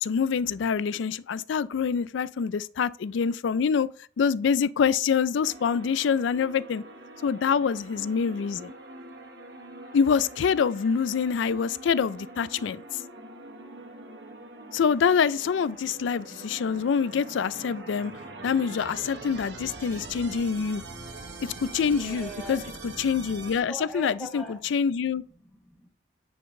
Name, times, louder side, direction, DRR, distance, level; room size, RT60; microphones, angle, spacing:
voice 1, 0.0-3.9 4.2-6.8 7.2-8.7 9.9-12.8 14.7-18.1 18.4-20.8 21.4-24.4 24.7-25.2, left 6 dB, 80° left, 0.4 m, -26 dB
sound 1, 5.5-23.6, right 2 dB, 60° right, 1.0 m, -43 dB
voice 2, 16.3-16.7 21.9-22.8 23.7-25.1 25.4-25.9, equal, ahead, 1.1 m, -44 dB
9.3 x 3.8 x 3.7 m
head